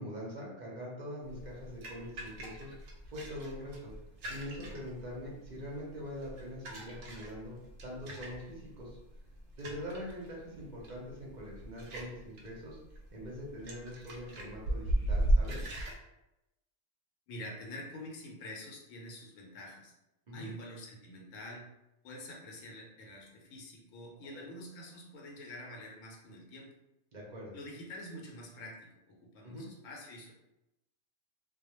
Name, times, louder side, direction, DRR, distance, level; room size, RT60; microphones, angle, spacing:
voice 1, 0.0-2.7 3.1-3.9 4.3-7.5 7.8-9.0 9.6-12.8 13.1-15.7 20.3-20.5 24.4-24.5 27.1-27.5 29.4-29.6, equal, 45° right, -4 dB, 0.6 m, -43 dB
sound 1, 1.3-16.0, right 1 dB, 85° right, 1.0 m, -37 dB
voice 2, 17.3-19.9 20.3-21.7 22.0-26.7 27.5-30.3, left 1 dB, 80° left, -2 dB, 1.0 m, -47 dB
2.3 x 2.1 x 2.9 m, 0.93 s
omnidirectional pair, 1.3 m